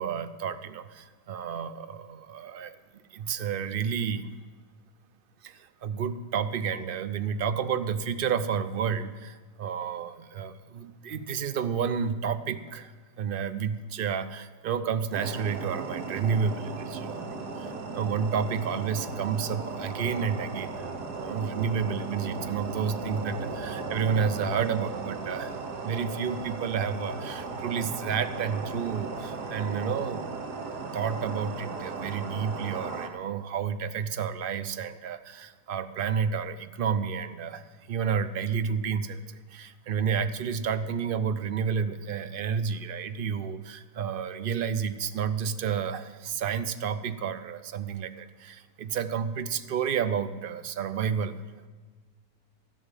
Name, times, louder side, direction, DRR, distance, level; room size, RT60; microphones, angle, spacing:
voice 1, 0.0-4.3 5.4-12.9 13.2-20.9 21.1-25.5 25.8-30.3 30.9-51.3, right 7 dB, 55° right, 11 dB, 0.6 m, -30 dB
sound 1, 15.1-33.1, right 4 dB, 90° right, 1.7 m, -36 dB
14.0 x 6.8 x 8.9 m, 1.4 s
omnidirectional pair, 1.7 m